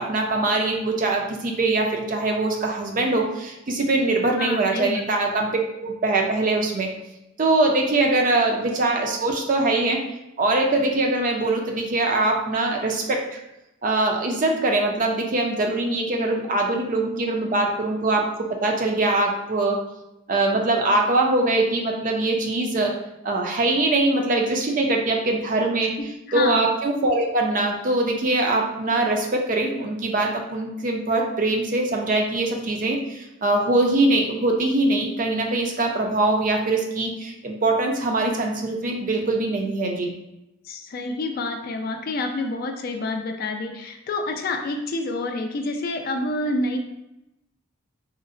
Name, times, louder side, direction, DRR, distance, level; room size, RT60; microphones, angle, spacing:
voice 1, 0.0-5.5 5.8-6.9 7.4-10.0 10.4-13.4 13.8-19.8 20.3-22.9 23.2-25.9 26.3-40.1, right 2 dB, 40° right, 2 dB, 0.4 m, -22 dB
voice 2, 4.4-5.1 26.3-26.6 40.6-46.8, left 2 dB, 45° left, 4 dB, 0.3 m, -28 dB
3.7 x 2.0 x 2.5 m, 0.90 s
head